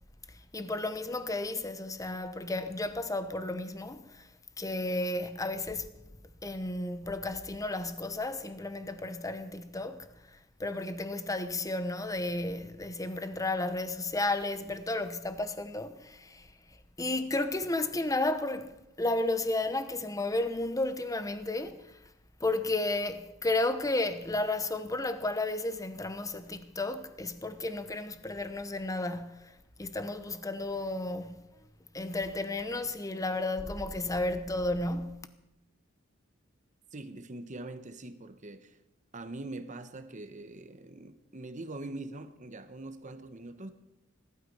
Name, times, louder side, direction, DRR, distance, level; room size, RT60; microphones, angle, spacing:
voice 1, 0.3-4.3 4.6-5.9 6.4-16.5 17.0-22.0 22.4-29.5 29.8-31.5 31.9-35.3, left 2 dB, 15° left, 0.9 m, -33 dB
voice 2, 36.9-38.8 39.1-43.7, right 2 dB, 40° right, 1.1 m, -43 dB
18.0 x 12.5 x 5.5 m
head